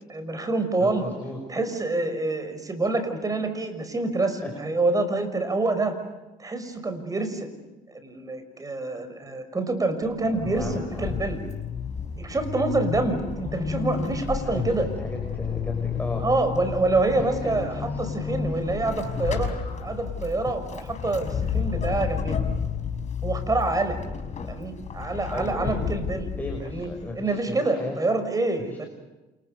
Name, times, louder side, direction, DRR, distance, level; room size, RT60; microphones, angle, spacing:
voice 1, 0.0-1.0 1.5-6.0 6.4-7.5 7.9-11.4 12.2-14.9 16.2-19.5 19.8-22.4 23.2-24.0 24.5-26.3 26.7-26.9 27.2-28.9, right 2 dB, 20° right, 9 dB, 5.8 m, -26 dB
voice 2, 0.8-1.4 4.4-4.5 10.2-11.4 14.4-16.3 17.2-18.1 18.5-18.7 25.3-25.8 26.4-27.9 28.7-28.9, left 2 dB, 10° left, 1 dB, 6.0 m, -36 dB
Vehicle / Accelerating revving vroom / Squeak, 10.0-27.2, left 6 dB, 45° left, 5.3 m, -31 dB
29.5 x 28.5 x 6.8 m, 1.1 s
cardioid pair, 110°, 17 cm